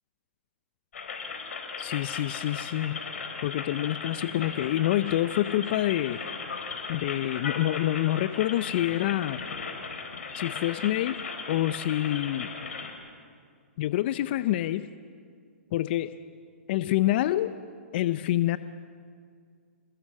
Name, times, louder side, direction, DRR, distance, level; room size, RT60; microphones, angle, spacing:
sound 1, 0.9-12.9, left 5 dB, 75° left, 4.2 m, -37 dB
voice 1, 1.8-3.0 3.4-6.2 6.9-9.4 10.3-11.2 11.5-12.5 13.8-14.9 15.7-16.2 16.7-17.5 17.9-18.6, left 14 dB, 50° left, 14 dB, 0.6 m, -27 dB
27.0 x 21.0 x 7.5 m, 2.1 s
hypercardioid pair, 135°, 7 cm